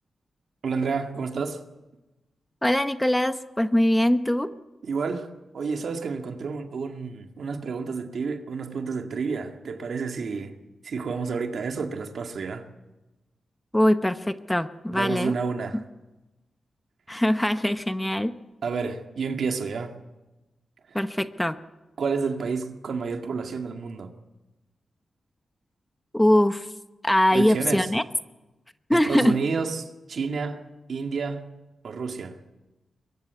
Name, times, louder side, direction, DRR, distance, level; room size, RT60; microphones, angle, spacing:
voice 1, 0.6-1.6 4.8-5.3 5.5-10.5 10.8-12.6 14.9-15.8 18.6-19.9 22.0-24.1 27.3-27.9 28.9-30.6 30.9-31.5 31.8-32.4, right 5 dB, 70° right, 2.1 m, -30 dB
voice 2, 2.6-4.5 13.7-15.4 15.7-15.8 17.1-18.3 20.9-21.6 26.1-26.7 27.0-28.0 28.9-29.4, left 1 dB, 10° left, 0.9 m, -22 dB
22.5 x 22.5 x 8.3 m
cardioid pair, 90°, 0 cm